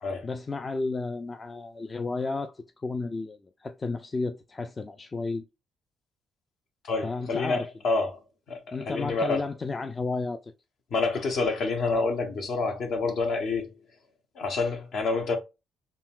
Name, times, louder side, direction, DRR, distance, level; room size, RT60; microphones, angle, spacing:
voice 1, 0.2-5.4 7.0-7.7 8.7-10.5, left 3 dB, 30° left, 0.3 m, -32 dB
voice 2, 6.8-8.2 8.5-9.5 10.9-13.7 14.3-15.4, left 3 dB, 65° left, 0.9 m, -28 dB
3.8 x 2.1 x 2.3 m
cardioid pair, 90°, 0 cm